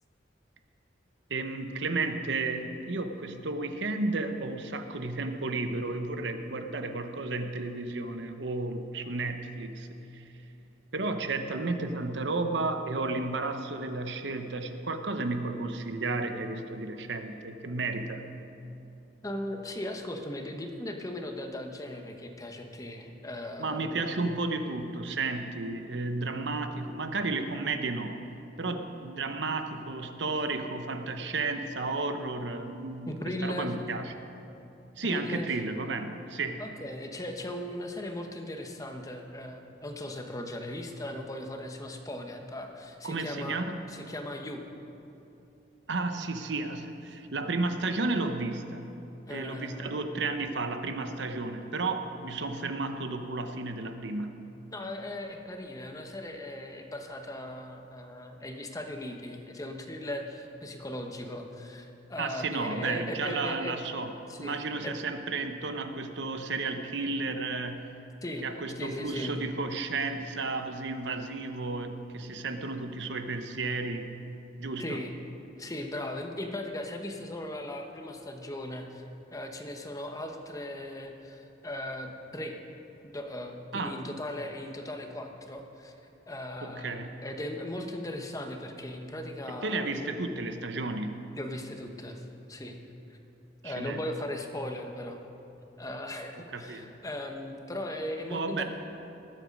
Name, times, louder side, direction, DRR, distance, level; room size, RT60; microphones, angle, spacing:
voice 1, 1.3-10.2 10.9-18.2 23.6-28.2 28.6-34.1 35.0-36.6 43.0-43.8 45.9-48.9 49.3-54.4 62.2-64.1 64.4-67.9 68.4-74.1 74.6-75.0 83.7-83.9 86.6-87.1 89.5-91.3 93.6-94.0 96.5-96.9 98.3-98.6, right 3 dB, 65° right, 7 dB, 0.9 m, -33 dB
voice 2, 19.2-24.3 33.0-33.7 35.0-35.5 36.6-43.6 43.9-44.6 49.3-50.2 54.7-63.7 64.3-64.9 68.2-69.4 74.8-75.2 75.6-82.6 83.0-85.9 86.3-90.1 91.3-92.7 93.1-93.2 93.6-95.2 95.8-98.6, left 1 dB, 20° left, 4 dB, 1.0 m, -38 dB
19.0 x 7.9 x 5.3 m, 2.8 s
head